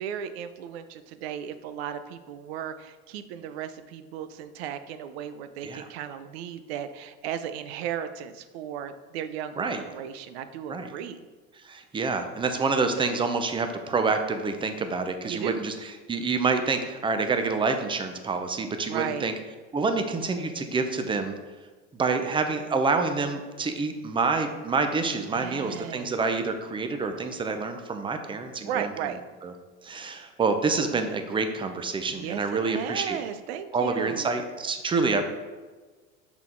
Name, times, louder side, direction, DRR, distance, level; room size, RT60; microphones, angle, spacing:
voice 1, 0.0-11.3 15.2-15.6 18.9-19.3 25.3-26.1 28.6-29.2 32.1-34.3, right 9 dB, 90° right, 11 dB, 0.5 m, -35 dB
voice 2, 11.6-15.7 16.1-19.3 19.7-21.3 21.9-28.9 29.4-29.5 29.8-33.2 33.7-35.2, right 4 dB, 15° right, 7 dB, 0.6 m, -27 dB
6.0 x 3.9 x 4.4 m, 1.4 s
supercardioid pair, 110°, 31 cm